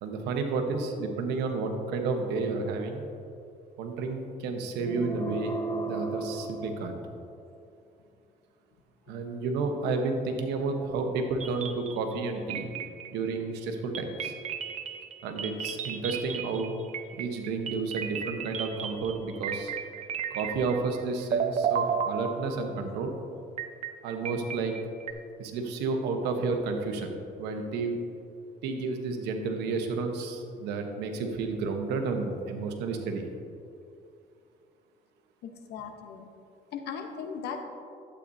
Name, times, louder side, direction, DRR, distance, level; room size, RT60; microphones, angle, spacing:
voice 1, 0.0-3.0 3.8-5.5 5.9-7.0 9.1-12.7 13.1-14.3 15.2-16.7 17.1-19.7 20.3-23.1 24.0-24.7 25.4-27.1 27.4-28.0 28.6-33.3, right 4 dB, 90° right, 4 dB, 1.1 m, -31 dB
sound 1, 4.8-7.4, right 2 dB, 25° left, 0.8 m, -34 dB
sound 2, 11.4-12.2 12.5-13.3 13.9-21.0 21.3-22.8 23.6-25.1, right 7 dB, 45° right, 0.7 m, -33 dB
voice 2, 35.4-36.3 36.7-37.6, left 6 dB, 75° left, 5 dB, 1.0 m, -38 dB
11.5 x 8.4 x 2.7 m, 2.5 s
cardioid pair, 110°, 17 cm